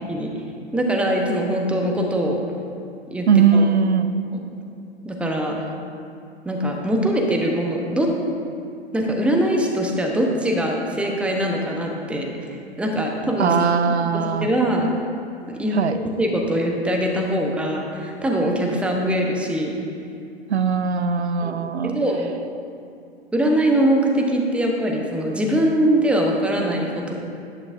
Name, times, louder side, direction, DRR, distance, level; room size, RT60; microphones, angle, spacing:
voice 1, 0.7-2.4 3.1-3.3 3.5-3.7 4.3-4.4 5.0-5.6 6.4-8.1 8.9-12.5 12.8-13.6 14.1-14.9 15.5-19.7 21.4-21.6 21.8-22.3 23.3-27.1, right 1 dB, 5° right, 0 dB, 0.8 m, -22 dB
voice 2, 3.3-4.1 13.4-14.5 15.7-16.0 20.5-22.0, right 6 dB, 80° right, 10 dB, 0.5 m, -19 dB
10.5 x 8.8 x 2.6 m, 2.5 s
figure-of-eight pair, 105°, 32 cm